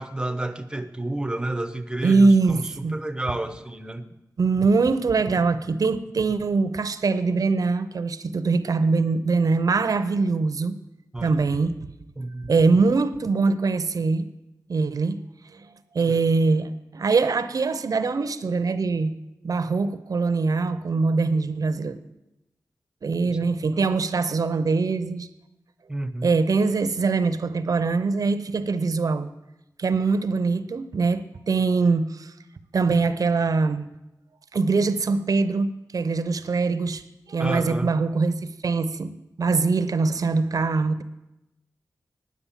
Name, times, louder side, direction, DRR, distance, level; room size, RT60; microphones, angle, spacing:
voice 1, 0.0-4.0 11.1-11.4 12.2-12.5 16.1-16.2 23.3-23.8 25.9-26.3 37.4-37.9, right 2 dB, 15° right, 0.8 m, -31 dB
voice 2, 2.0-3.0 4.4-10.8 11.2-11.8 12.5-14.3 14.7-15.2 15.5-15.7 15.9-19.1 19.4-22.0 23.0-25.3 26.2-29.3 29.8-32.3 32.7-33.9 34.5-37.0 37.3-41.0, right 4 dB, 65° right, 0.7 m, -23 dB
9.6 x 8.4 x 7.3 m
wide cardioid pair, 100°, 7 cm